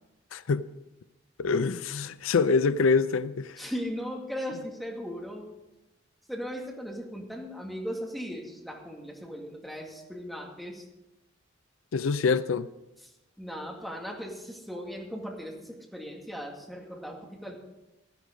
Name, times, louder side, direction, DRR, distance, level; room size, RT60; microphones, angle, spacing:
voice 1, 0.3-0.7 1.4-3.6 11.9-12.7, left 4 dB, 90° left, 0.5 m, -25 dB
voice 2, 3.6-5.5 6.3-10.9 13.0-17.6, equal, ahead, 2.0 m, -38 dB
12.0 x 11.0 x 5.2 m
head